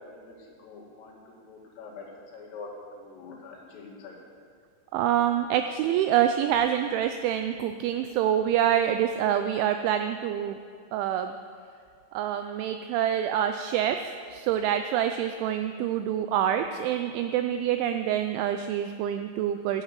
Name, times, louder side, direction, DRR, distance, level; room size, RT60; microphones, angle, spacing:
voice 1, 0.6-2.1 2.3-2.7 3.0-4.2, left 4 dB, 80° left, -4 dB, 4.8 m, -45 dB
voice 2, 4.9-10.6 10.9-11.3 12.1-19.8, right 10 dB, 85° right, 8 dB, 2.7 m, -26 dB
14.5 x 7.9 x 7.4 m, 2.2 s
omnidirectional pair, 5.9 m